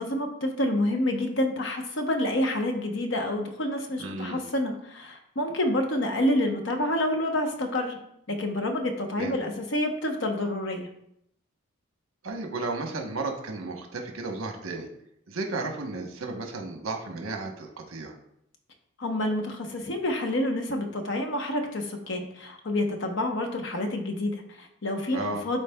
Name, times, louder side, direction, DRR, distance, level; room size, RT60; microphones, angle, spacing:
voice 1, 0.0-8.0 8.3-10.9 19.0-25.6, left 1 dB, 60° left, 3 dB, 0.9 m, -28 dB
voice 2, 4.0-4.4 9.1-9.3 12.2-14.9 15.3-18.1 25.1-25.4, right 3 dB, 80° right, 3 dB, 1.0 m, -33 dB
11.0 x 4.1 x 2.3 m, 0.75 s
head